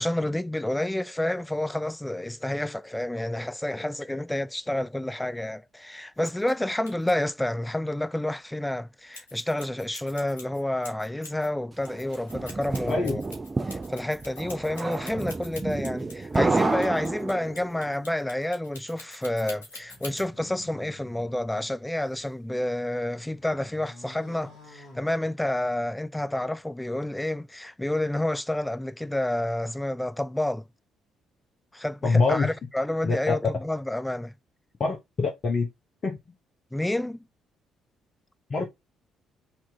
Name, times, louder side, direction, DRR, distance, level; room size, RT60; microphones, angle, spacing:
voice 1, 0.0-13.2 13.7-30.6 31.7-34.3 36.7-37.3, left 1 dB, 10° left, 0.4 m, -29 dB
sound 1, 6.2-6.5 6.9-7.1 9.1-11.5 11.8-20.3, left 2 dB, 80° left, 1.1 m, -45 dB
sound 2, 11.9-17.7, right 3 dB, 25° right, 0.7 m, -30 dB
voice 2, 12.9-13.2 32.0-32.5 33.0-33.3 34.8-35.7 36.0-36.2 38.5-38.7, left 3 dB, 40° left, 1.1 m, -24 dB
sound 3, 19.8-22.4 22.9-25.7, left 2 dB, 55° left, 1.4 m, -50 dB
4.3 x 2.9 x 3.5 m
figure-of-eight pair, 45°, 0 cm